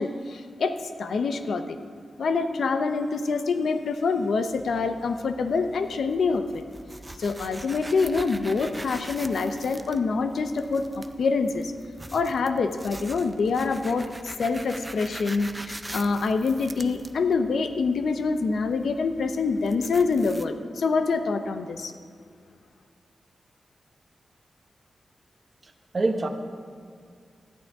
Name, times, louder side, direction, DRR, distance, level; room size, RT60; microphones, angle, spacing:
voice 1, 0.0-1.8 2.2-6.6 7.2-11.7 12.1-21.9, left 4 dB, 75° left, 8 dB, 0.6 m, -26 dB
sound 1, 4.5-20.5, right 1 dB, 15° right, 0.4 m, -43 dB
voice 2, 25.6-26.3, right 2 dB, 35° right, 5 dB, 0.9 m, -26 dB
13.5 x 9.9 x 3.5 m, 2.1 s
wide cardioid pair, 125°, 0 cm